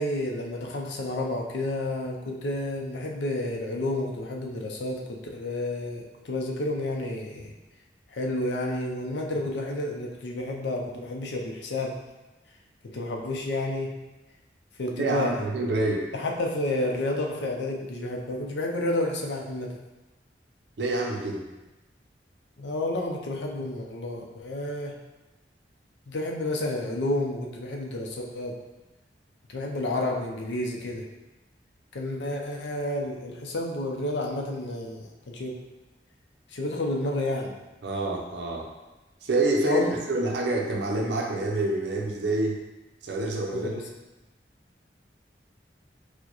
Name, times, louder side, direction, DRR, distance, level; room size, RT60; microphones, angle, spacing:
voice 1, 0.0-7.5 8.1-12.0 12.8-13.9 14.8-15.3 16.1-19.7 22.6-25.0 26.1-28.6 29.5-31.0 31.9-35.6 36.5-37.6 39.6-40.0 43.5-43.8, left 1 dB, 80° left, 1 dB, 0.5 m, -30 dB
voice 2, 14.9-16.1 20.8-21.4 37.8-38.7 39.2-42.6 43.0-43.7, right 2 dB, 75° right, 1 dB, 0.5 m, -27 dB
4.5 x 2.1 x 2.9 m, 1.1 s
head